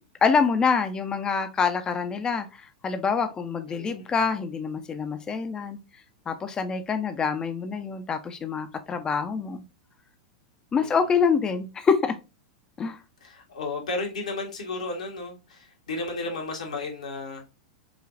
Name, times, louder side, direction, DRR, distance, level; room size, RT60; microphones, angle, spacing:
voice 1, 0.2-2.5 2.8-5.8 6.3-9.6 10.7-12.1 12.8-13.0, left 5 dB, 20° left, 0.5 m, -26 dB
voice 2, 3.7-4.1 10.8-11.0 13.2-17.4, left 3 dB, 70° left, 1.2 m, -33 dB
4.9 x 2.4 x 2.5 m
figure-of-eight pair, 90°, 4 cm